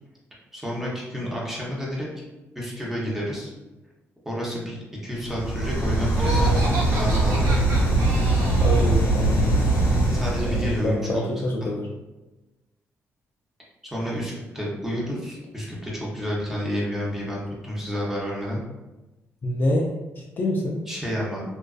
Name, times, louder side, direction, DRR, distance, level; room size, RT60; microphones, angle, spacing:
voice 1, 0.5-2.1 2.6-3.5 4.2-4.8 5.0-7.6 10.1-11.3 11.6-11.7 13.9-18.6 20.9-21.4, equal, 5° right, -5 dB, 0.7 m, -30 dB
sound 1, 5.2-10.9, right 2 dB, 75° left, 0.8 m, -21 dB
Laughter, 6.1-9.0, right 1 dB, 80° right, 0.6 m, -31 dB
voice 2, 8.6-9.6 10.5-11.9 19.4-19.9 20.4-20.8, left 1 dB, 40° left, -1 dB, 0.3 m, -26 dB
2.3 x 2.3 x 2.3 m, 1.1 s
cardioid pair, 110°, 5 cm